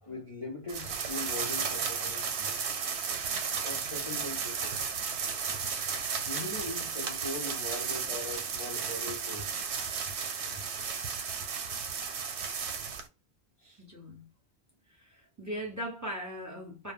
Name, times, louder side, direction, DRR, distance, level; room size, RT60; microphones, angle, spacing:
voice 1, 0.0-2.5 3.2-5.0 6.2-9.6 10.4-10.6 12.6-12.7 13.6-13.8, left 2 dB, 40° left, 0.5 m, -41 dB
sound 1, 0.7-13.1, right 6 dB, 90° right, 0.9 m, -34 dB
voice 2, 13.8-14.3 14.9-16.9, equal, 20° right, 0.7 m, -39 dB
2.1 x 2.0 x 3.5 m
omnidirectional pair, 1.1 m